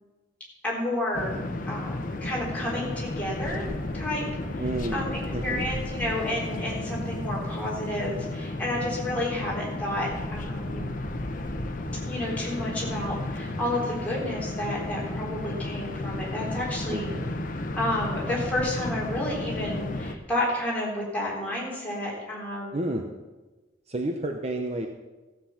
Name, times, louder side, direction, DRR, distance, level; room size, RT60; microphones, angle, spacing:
voice 1, 0.6-3.7 3.9-4.3 4.9-10.9 12.1-17.1 17.8-23.0, left 1 dB, 10° left, -6 dB, 3.9 m, -31 dB
sound 1, 1.1-20.2, left 1 dB, 45° left, 1.0 m, -33 dB
voice 2, 4.6-5.7 16.9-17.3 22.7-23.1 23.9-24.9, right 1 dB, 35° right, 4 dB, 0.8 m, -31 dB
14.5 x 7.8 x 5.8 m, 1.2 s
head